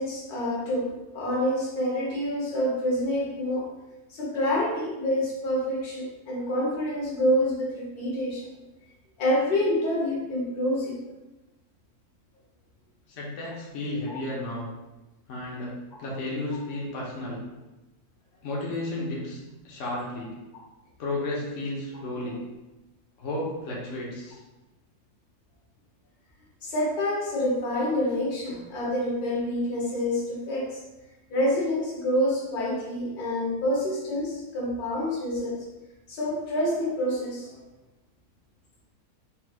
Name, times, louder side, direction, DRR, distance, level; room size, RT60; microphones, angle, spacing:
voice 1, 0.0-3.6 4.1-8.5 9.2-11.0 14.1-14.2 22.2-22.3 26.6-30.8 31.3-35.6 36.1-37.6, left 1 dB, 80° left, -3 dB, 1.5 m, -27 dB
voice 2, 13.1-14.7 15.3-17.4 18.4-20.3 21.0-22.4 23.2-24.4, left 1 dB, 55° left, -4 dB, 1.2 m, -33 dB
5.7 x 3.0 x 2.3 m, 1.0 s
omnidirectional pair, 1.6 m